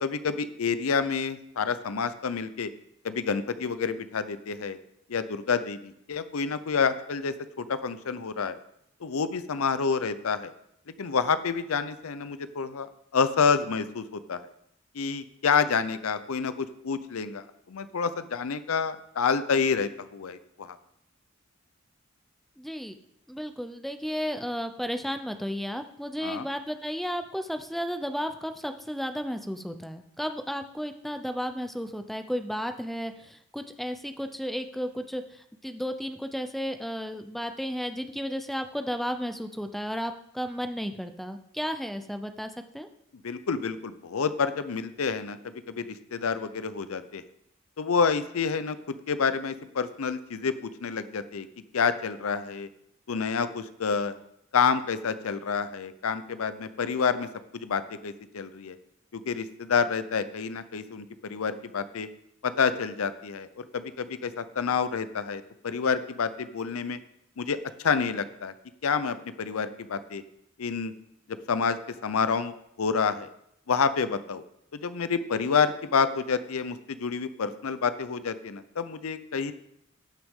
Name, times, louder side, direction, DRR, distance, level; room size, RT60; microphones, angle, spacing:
voice 1, 0.0-2.7 3.0-4.8 5.1-8.6 9.0-10.5 11.0-12.9 13.1-14.4 14.9-20.8 26.2-26.5 43.2-47.2 47.8-51.5 51.7-52.7 53.1-54.1 54.5-58.8 59.1-62.1 62.4-67.0 67.4-68.5 68.8-70.2 70.6-70.9 71.5-73.3 73.7-74.4 74.7-79.5, left 5 dB, 85° left, 13 dB, 0.6 m, -28 dB
voice 2, 22.6-23.0 23.3-42.5 42.7-42.9, equal, ahead, 8 dB, 0.5 m, -33 dB
18.0 x 6.1 x 3.7 m, 0.77 s
head